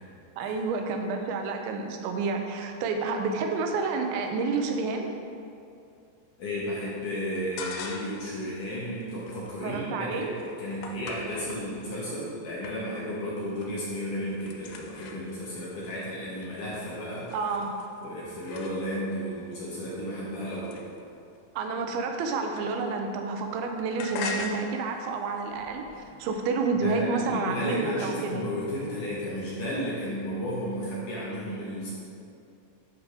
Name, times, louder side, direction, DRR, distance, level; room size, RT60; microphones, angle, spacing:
voice 1, 0.4-5.1 9.6-10.3 17.3-17.8 21.6-25.8 26.2-28.4, right 4 dB, 90° right, 4 dB, 3.1 m, -29 dB
voice 2, 6.4-17.4 18.0-20.8 26.0-26.1 26.8-31.9, equal, 65° left, -7 dB, 2.2 m, -33 dB
sound 1, 7.4-8.3 8.7-12.2 12.6-13.2 13.4-13.9 14.1-19.2 19.8-23.1 23.3-26.5, left 3 dB, 80° left, 2.9 m, -42 dB
11.5 x 5.0 x 4.8 m, 2.6 s
omnidirectional pair, 5.1 m